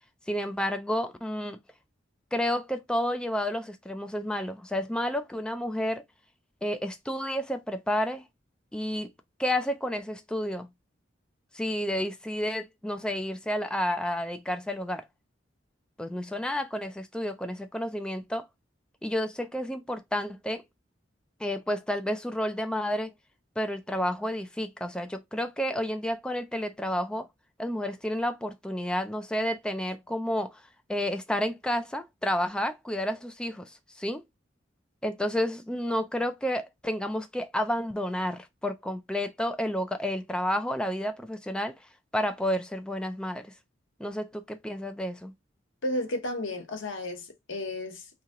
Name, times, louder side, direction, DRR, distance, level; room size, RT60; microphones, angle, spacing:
voice 1, 0.3-1.6 2.3-6.0 6.6-8.2 8.7-9.1 9.4-10.7 11.5-15.0 16.0-18.5 19.0-20.6 21.4-23.1 23.6-27.3 27.6-30.6 30.9-34.2 35.0-41.8 42.1-43.5 44.0-45.3, equal, 5° left, 0.3 m, -30 dB
voice 2, 45.8-48.1, left 1 dB, 90° left, 1.0 m, -33 dB
2.9 x 2.8 x 3.6 m
head